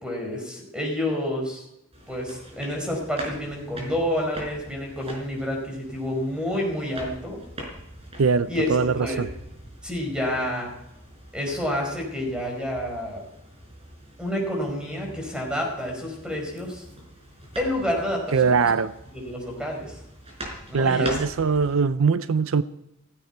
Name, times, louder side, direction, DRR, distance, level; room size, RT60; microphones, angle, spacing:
voice 1, 0.0-1.6 2.1-7.4 8.5-8.7 9.0-9.3 9.8-10.7 11.3-13.2 14.2-16.8 17.5-18.5 19.1-20.0 20.7-21.2, left 1 dB, 5° right, 5.0 m, -29 dB
sound 1, 1.9-21.8, right 1 dB, 30° right, 4.8 m, -42 dB
voice 2, 8.2-9.3 18.3-18.9 20.7-22.6, right 5 dB, 80° right, 0.5 m, -22 dB
16.0 x 15.5 x 4.6 m
head